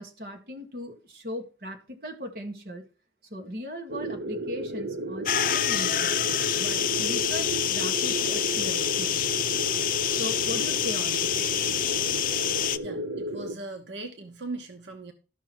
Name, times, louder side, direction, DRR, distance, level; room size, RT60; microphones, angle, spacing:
voice 1, 0.0-2.9 3.3-6.2 6.6-9.1 10.1-11.4, equal, 55° right, 2 dB, 1.9 m, -38 dB
sound 1, 3.9-13.5, right 1 dB, 70° right, 0.6 m, -33 dB
sound 2, 5.3-12.8, left 11 dB, 50° left, 0.5 m, -27 dB
voice 2, 12.8-15.1, right 2 dB, 90° right, 5 dB, 1.1 m, -39 dB
12.5 x 5.9 x 4.4 m, 0.35 s
head